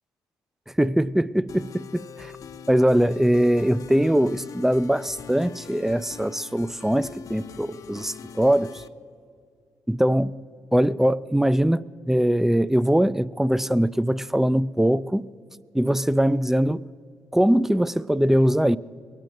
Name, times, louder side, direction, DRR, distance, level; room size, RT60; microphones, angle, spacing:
voice 1, 0.8-2.3 2.7-8.8 9.9-10.4 10.7-15.3 15.7-16.9 17.3-18.8, equal, 5° right, 0.4 m, -22 dB
sound 1, 1.5-8.9, left 7 dB, 60° left, 0.7 m, -43 dB
22.5 x 9.2 x 6.5 m
cardioid pair, 70°, 7 cm